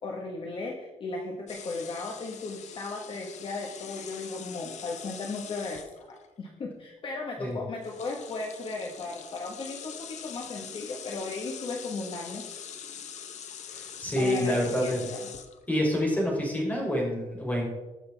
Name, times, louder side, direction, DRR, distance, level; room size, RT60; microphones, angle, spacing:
voice 1, 0.0-5.9 6.4-12.7 14.2-15.3, left 3 dB, 40° left, 0 dB, 1.4 m, -36 dB
sound 1, 1.5-6.3 7.4-7.6 7.8-15.7, left 8 dB, 60° left, 1.0 m, -43 dB
voice 2, 13.7-15.0 15.7-17.7, left 1 dB, 10° left, -2 dB, 3.5 m, -27 dB
19.5 x 6.5 x 3.5 m, 1.1 s
cardioid pair, 160°, 13 cm